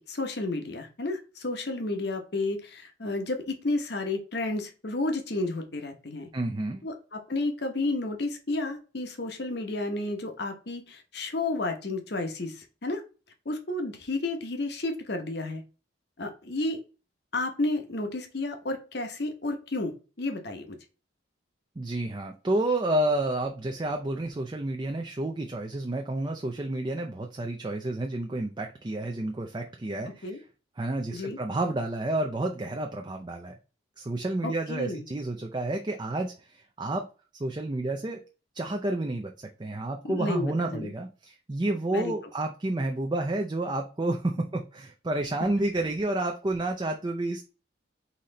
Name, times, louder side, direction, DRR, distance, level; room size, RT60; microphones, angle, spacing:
voice 1, 0.0-6.3 6.8-13.0 13.4-15.6 16.2-16.8 17.3-19.9 20.2-20.8 30.2-30.4 31.1-31.4 34.4-35.0 40.0-40.9 41.9-42.1, left 2 dB, 55° left, 5 dB, 0.9 m, -31 dB
voice 2, 6.3-6.8 21.8-30.4 30.8-33.6 34.0-37.0 37.4-38.2 38.5-47.4, right 2 dB, 25° right, 3 dB, 0.4 m, -30 dB
4.2 x 3.1 x 3.8 m, 0.34 s
head